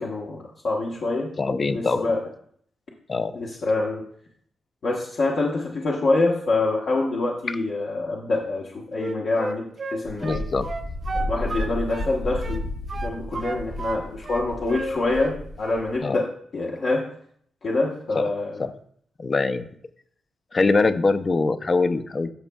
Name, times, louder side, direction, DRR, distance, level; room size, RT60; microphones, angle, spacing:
voice 1, 0.0-1.3 1.6-2.2 3.3-4.0 4.8-10.4 11.3-12.6 13.0-16.3 16.5-17.0 17.6-18.6, left 2 dB, 55° left, -2 dB, 1.0 m, -25 dB
voice 2, 1.4-2.0 3.1-3.3 10.2-10.7 16.0-16.2 18.2-18.3 18.6-18.7 19.2-19.7 20.5-22.3, left 3 dB, 30° left, 11 dB, 0.4 m, -23 dB
Wind instrument woodwind instrument, 9.0-12.1 12.4-14.0 14.2-15.4 15.6-15.9, right 3 dB, 35° right, 0.5 m, -32 dB
Wind, 10.1-16.0, left 1 dB, 85° left, 2.0 m, -32 dB
12.5 x 6.1 x 2.3 m, 0.62 s
wide cardioid pair, 140°, 0 cm